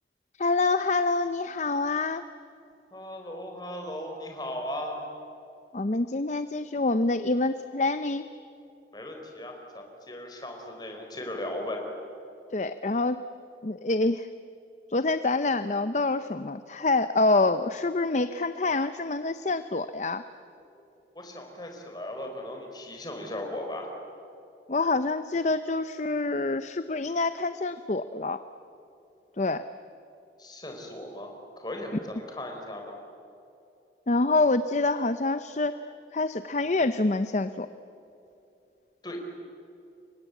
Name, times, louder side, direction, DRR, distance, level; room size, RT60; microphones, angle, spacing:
voice 1, 0.4-2.2 5.7-8.3 12.5-13.2 13.6-14.3 14.9-20.2 24.7-28.4 29.4-29.6 34.1-35.8 36.1-37.7, left 3 dB, 40° left, 11 dB, 0.7 m, -26 dB
voice 2, 2.9-5.0 8.9-11.8 20.7-20.8 21.1-23.9 30.4-33.0 39.0-39.2, left 1 dB, 25° left, 2 dB, 4.5 m, -37 dB
28.5 x 24.0 x 8.3 m, 2.7 s
head